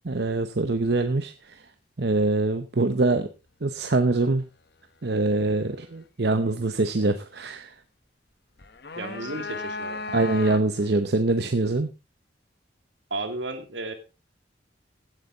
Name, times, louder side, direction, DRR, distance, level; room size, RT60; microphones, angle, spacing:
voice 1, 0.0-1.6 2.0-3.3 3.6-4.4 5.0-7.8 10.1-11.9, right 2 dB, 60° right, 9 dB, 0.8 m, -24 dB
sound 1, 8.6-10.9, left 3 dB, 60° left, 1.0 m, -35 dB
voice 2, 9.0-10.0 13.1-13.9, right 2 dB, 80° right, 7 dB, 2.3 m, -33 dB
15.5 x 8.3 x 3.9 m, 0.29 s
head